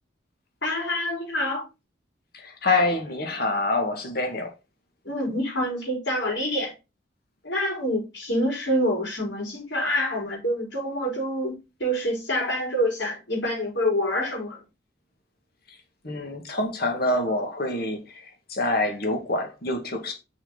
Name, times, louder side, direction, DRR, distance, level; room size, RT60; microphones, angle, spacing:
voice 1, 0.6-1.6 5.0-6.7 7.4-11.5 11.8-14.6, equal, 70° left, 5.0 m, -26 dB
voice 2, 2.3-4.5 15.7-15.8 16.0-20.1, left 2 dB, 55° left, 2.2 m, -26 dB
6.3 x 6.0 x 4.1 m
head